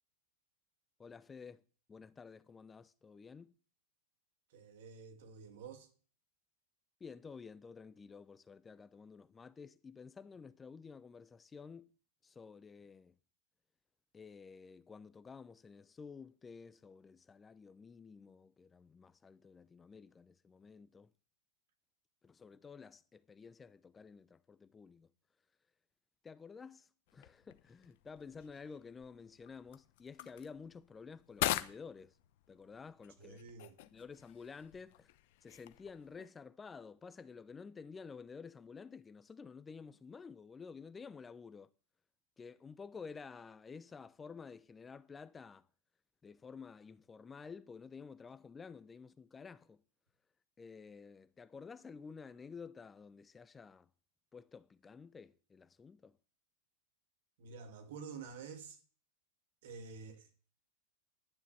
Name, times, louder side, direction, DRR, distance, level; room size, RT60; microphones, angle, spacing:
voice 1, 1.0-1.6 1.9-3.5 7.0-11.9 12.2-13.1 14.1-21.1 22.2-25.1 26.2-32.2 32.5-33.4 33.9-35.1 35.4-41.7 42.4-45.7 46.2-49.8 50.6-53.9 54.3-56.2, left 5 dB, 20° left, 0.6 m, -52 dB
voice 2, 4.5-5.9 33.2-33.8 57.4-58.8 59.6-60.3, right 5 dB, 70° right, 2.7 m, -49 dB
sound 1, 27.1-36.3, left 15 dB, 60° left, 0.9 m, -44 dB
11.0 x 7.3 x 7.7 m
hypercardioid pair, 110°, 0 cm